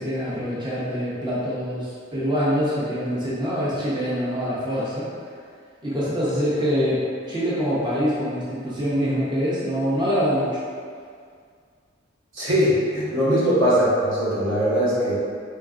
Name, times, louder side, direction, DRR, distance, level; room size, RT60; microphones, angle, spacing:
voice 1, 0.0-5.1 5.8-10.6 13.4-13.5, equal, 25° right, -9 dB, 0.5 m, -25 dB
voice 2, 12.4-15.1, equal, 75° right, -9 dB, 1.0 m, -20 dB
3.3 x 2.3 x 2.4 m, 2.1 s
head